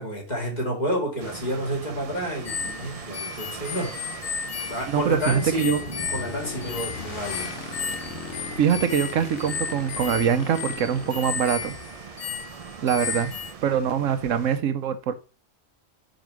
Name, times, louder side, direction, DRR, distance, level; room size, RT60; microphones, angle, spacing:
voice 1, 0.0-3.9 4.7-7.5, equal, 35° left, 0 dB, 2.4 m, -30 dB
sound 1, 1.2-14.6, right 6 dB, 50° right, 0.4 m, -41 dB
sound 2, 2.4-13.5, left 6 dB, 90° left, 1.5 m, -34 dB
Motorcycle / Engine, 2.5-12.1, left 9 dB, 70° left, 1.0 m, -41 dB
voice 2, 4.9-5.8 8.6-11.7 12.8-13.3 13.6-15.1, right 8 dB, 80° right, 9 dB, 1.1 m, -23 dB
5.3 x 5.2 x 6.1 m, 0.34 s
omnidirectional pair, 1.3 m